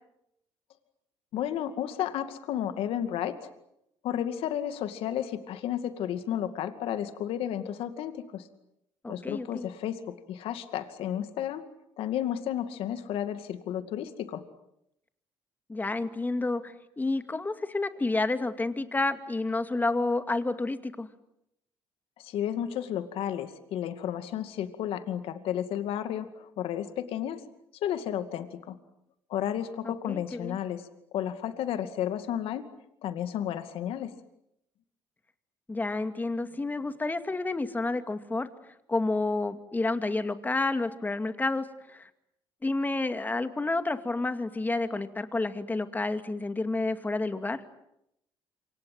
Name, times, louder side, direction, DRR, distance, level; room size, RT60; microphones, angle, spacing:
voice 1, 1.3-3.5 4.0-8.5 9.1-11.6 12.0-14.4 22.2-27.4 27.8-28.8 29.3-30.8 31.1-32.6 33.0-34.1, left 10 dB, 75° left, 9 dB, 2.3 m, -32 dB
voice 2, 9.0-9.7 15.7-21.1 29.8-30.6 35.7-38.5 38.9-42.1 42.6-47.6, left 2 dB, 20° left, 9 dB, 2.4 m, -30 dB
27.5 x 25.0 x 7.8 m, 0.81 s
cardioid pair, 90°, 10 cm